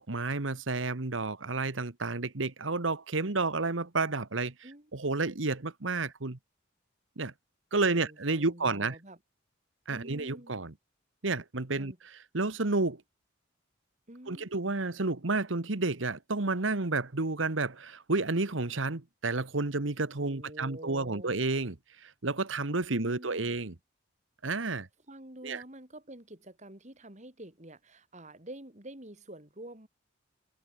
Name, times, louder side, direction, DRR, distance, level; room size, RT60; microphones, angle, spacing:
voice 1, 0.0-6.4 7.2-7.3 7.7-9.0 9.9-10.7 11.2-13.0 14.3-23.7 24.4-24.9 25.4-25.6, right 3 dB, 80° right, 1.4 m, -31 dB
voice 2, 7.9-9.2 9.9-10.5 11.7-12.0 14.1-14.5 20.2-21.3 22.9-23.5 25.1-29.9, right 1 dB, 35° right, 3.6 m, -48 dB
head